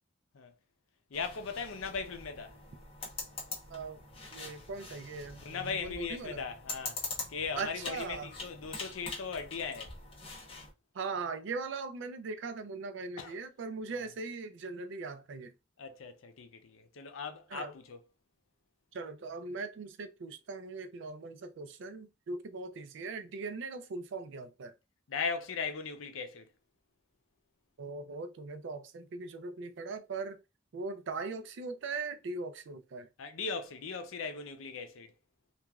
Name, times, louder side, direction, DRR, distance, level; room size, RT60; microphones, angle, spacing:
voice 1, 1.1-2.6 5.4-7.0 7.3-9.9 13.2-13.4 13.9-14.0 15.8-18.0 25.1-26.5 33.2-35.1, left 5 dB, 85° left, 0.5 m, -38 dB
sound 1, 1.1-10.7, left 3 dB, 30° left, 0.9 m, -44 dB
voice 2, 3.7-4.0 4.3-6.4 7.6-8.3 10.9-15.5 17.5-17.7 18.9-24.7 27.8-30.4 30.7-33.1, right 4 dB, 65° right, 0.4 m, -40 dB
2.9 x 2.4 x 2.3 m
head